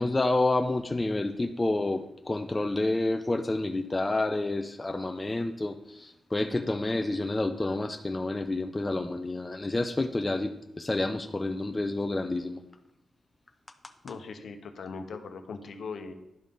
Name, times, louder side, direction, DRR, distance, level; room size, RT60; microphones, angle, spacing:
voice 1, 0.0-5.7 6.0-10.5 10.8-12.6, left 2 dB, 15° left, 6 dB, 0.4 m, -29 dB
voice 2, 14.0-16.1, left 4 dB, 60° left, 6 dB, 0.9 m, -40 dB
10.5 x 5.2 x 3.8 m, 0.87 s
wide cardioid pair, 145°, 0 cm